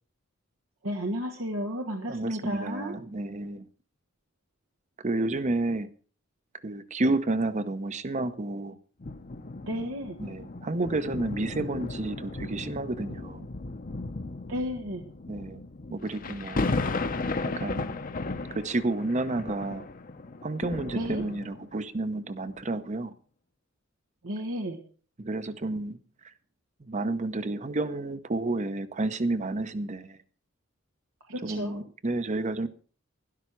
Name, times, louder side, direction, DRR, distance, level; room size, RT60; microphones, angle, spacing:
voice 1, 0.8-2.9 9.7-10.2 14.5-15.0 20.9-21.2 24.2-24.8 31.3-31.8, equal, 90° right, 1.5 m, -32 dB
voice 2, 2.1-3.7 5.0-5.9 6.6-8.8 10.2-13.5 15.3-15.6 15.9-16.7 17.4-18.0 18.5-19.9 20.4-23.1 25.2-26.0 26.8-30.2 31.4-32.7, right 2 dB, 35° right, 0.7 m, -30 dB
sound 1, 9.0-21.8 22.5-22.6, left 3 dB, 45° left, 0.8 m, -35 dB
12.5 x 11.5 x 4.6 m
head